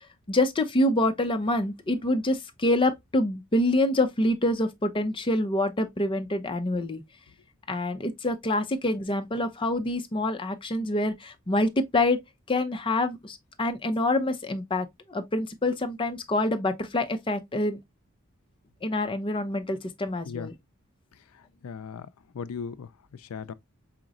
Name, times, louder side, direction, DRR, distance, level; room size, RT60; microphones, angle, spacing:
voice 1, 0.3-7.0 7.7-12.2 12.5-17.8 18.8-20.5, left 1 dB, 25° left, 0.6 m, -26 dB
voice 2, 21.3-22.1 22.3-23.5, left 6 dB, 75° left, 0.4 m, -38 dB
4.9 x 3.0 x 2.4 m
head